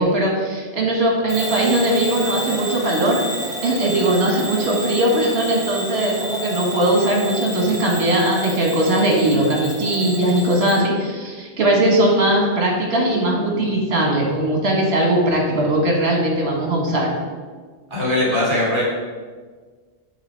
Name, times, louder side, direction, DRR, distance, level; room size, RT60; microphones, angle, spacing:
voice 1, 0.0-3.2 3.6-17.1, right 1 dB, 70° right, -1 dB, 1.5 m, -19 dB
Bell / Alarm, 1.3-10.8, right 1 dB, 5° right, 1.5 m, -30 dB
voice 2, 17.9-18.8, left 1 dB, 25° right, -6 dB, 1.9 m, -20 dB
7.5 x 3.2 x 4.4 m, 1.5 s
omnidirectional pair, 1.1 m